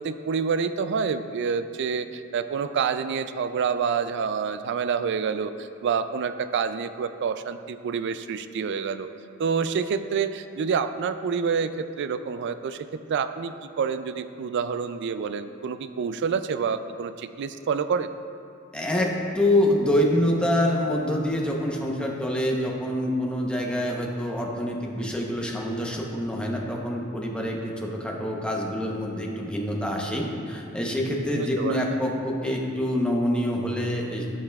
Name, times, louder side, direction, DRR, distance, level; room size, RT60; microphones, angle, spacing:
voice 1, 0.0-9.1 9.4-18.1 31.3-31.8, right 6 dB, 60° right, 11 dB, 0.3 m, -28 dB
voice 2, 18.7-34.3, left 1 dB, 5° left, -1 dB, 0.8 m, -26 dB
14.5 x 5.5 x 2.3 m, 2.5 s
head